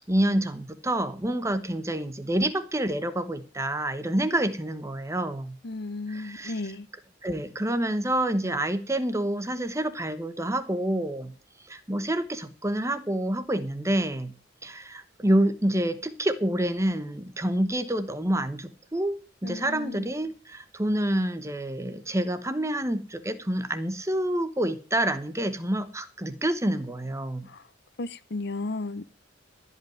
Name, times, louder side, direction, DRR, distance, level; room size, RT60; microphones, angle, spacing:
voice 1, 0.1-5.6 6.1-6.7 7.2-11.3 11.7-14.3 14.6-27.5, right 1 dB, 15° right, 1.0 m, -28 dB
voice 2, 5.6-6.9 19.4-20.1 27.5-27.6 28.0-29.1, left 2 dB, 60° left, 0.7 m, -34 dB
14.0 x 5.5 x 9.1 m
head